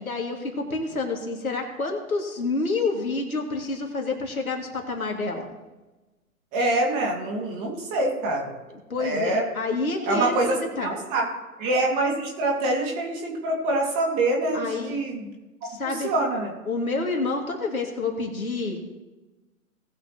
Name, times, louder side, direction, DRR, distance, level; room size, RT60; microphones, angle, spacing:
voice 1, 0.0-5.5 8.7-10.9 14.5-14.9 15.6-16.1 16.6-18.8, left 3 dB, 70° left, 1 dB, 2.5 m, -28 dB
voice 2, 6.5-8.6 9.0-9.4 10.1-11.3 11.6-15.3 15.8-16.5, right 2 dB, 20° right, -1 dB, 2.0 m, -25 dB
19.0 x 7.2 x 3.0 m, 1.1 s
figure-of-eight pair, 130°, 43 cm